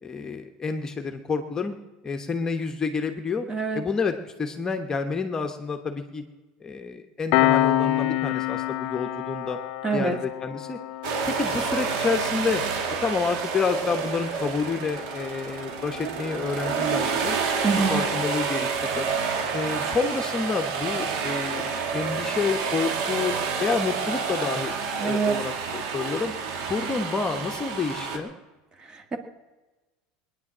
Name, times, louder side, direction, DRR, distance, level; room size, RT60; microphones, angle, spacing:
voice 1, 0.0-1.7 2.0-3.5 3.7-6.2 6.6-9.6 9.9-10.8 11.3-12.6 13.0-17.4 17.9-19.1 19.5-21.7 21.9-26.3 26.7-28.3, left 4 dB, 20° left, 5 dB, 1.1 m, -29 dB
voice 2, 3.5-3.9 9.8-10.2 17.6-18.0 25.0-25.4 28.8-29.2, right 4 dB, 25° right, 6 dB, 1.9 m, -26 dB
Piano, 7.3-18.4, left 14 dB, 65° left, 0.7 m, -30 dB
sound 1, 11.0-28.2, right 5 dB, 70° right, 2.4 m, -29 dB
19.5 x 9.9 x 7.3 m, 1.2 s
supercardioid pair, 130°, 3 cm